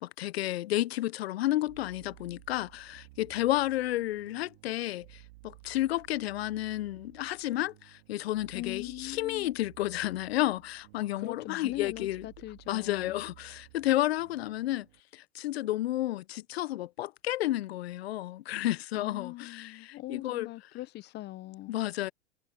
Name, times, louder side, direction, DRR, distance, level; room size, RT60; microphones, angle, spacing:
voice 1, 0.0-5.1 5.4-12.2 12.7-14.9 15.1-20.5 21.7-22.1, left 15 dB, 65° left, 0.9 m, -31 dB
sound 1, 1.7-15.0, right 22 dB, 55° right, 3.8 m, -56 dB
voice 2, 8.5-9.5 11.0-13.2 18.9-21.7, left 17 dB, 30° left, 0.8 m, -41 dB
hypercardioid pair, 100°, 33 cm